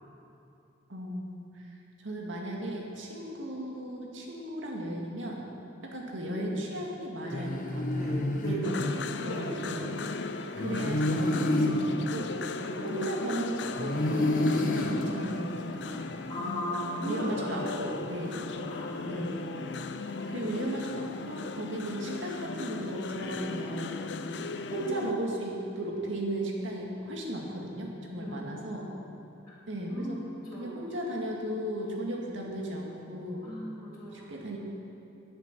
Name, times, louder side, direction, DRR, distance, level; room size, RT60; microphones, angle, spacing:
voice 1, 0.9-1.6 2.0-5.4 5.8-8.1 8.5-8.9 9.2-9.9 10.6-12.3 12.8-16.0 17.0-18.5 19.0-19.5 20.3-23.9 24.7-28.9 29.7-30.2 30.5-33.4 34.0-34.6, right 1 dB, 90° right, -1 dB, 2.1 m, -36 dB
voice 2, 7.2-7.5 7.9-8.9 9.3-9.7 12.6-12.9 16.3-17.5 17.9-18.0 18.6-19.4 20.1-20.5 24.1-24.4 28.2-29.3 29.9-30.2 30.5-30.7 33.4-34.3, equal, 20° left, -13 dB, 2.4 m, -38 dB
sound 1, 7.3-9.4 10.6-13.3 13.8-16.0, left 1 dB, 45° left, 0.8 m, -30 dB
sound 2, 8.6-25.1, left 4 dB, 70° left, 0.5 m, -37 dB
11.0 x 10.0 x 6.0 m, 2.9 s
head